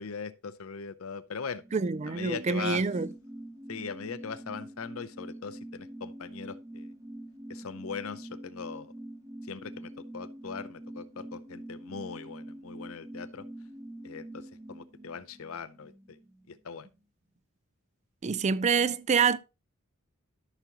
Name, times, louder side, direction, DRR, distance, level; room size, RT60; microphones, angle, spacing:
voice 1, 0.0-1.6 2.1-2.9 3.7-6.9 7.5-8.9 9.4-13.4 14.0-16.2 16.5-16.9, left 5 dB, 75° left, 0.6 m, -40 dB
sound 1, 1.5-16.6 16.9-17.0, right 1 dB, 15° right, 0.8 m, -45 dB
voice 2, 1.7-3.1 18.2-19.4, right 5 dB, 30° right, 0.4 m, -26 dB
13.0 x 6.1 x 2.8 m
head